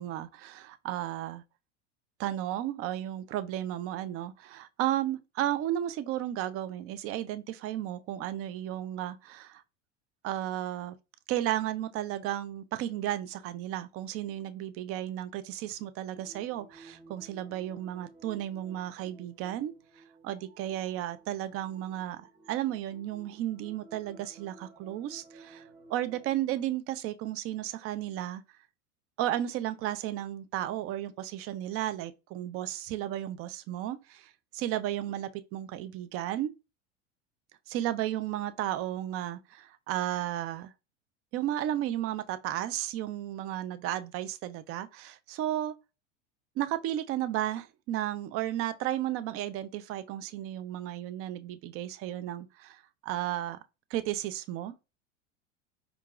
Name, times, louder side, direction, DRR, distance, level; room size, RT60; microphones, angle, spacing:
voice 1, 0.0-1.4 2.2-9.6 10.2-10.9 11.3-19.7 20.2-25.6 25.9-28.4 29.2-36.5 37.7-40.7 41.3-45.7 46.6-53.6 53.9-54.7, right 12 dB, 40° right, 0.5 m, -34 dB
sound 1, 16.1-26.3, right 3 dB, 15° right, 0.9 m, -55 dB
4.5 x 2.5 x 2.4 m
hypercardioid pair, 90°, 36 cm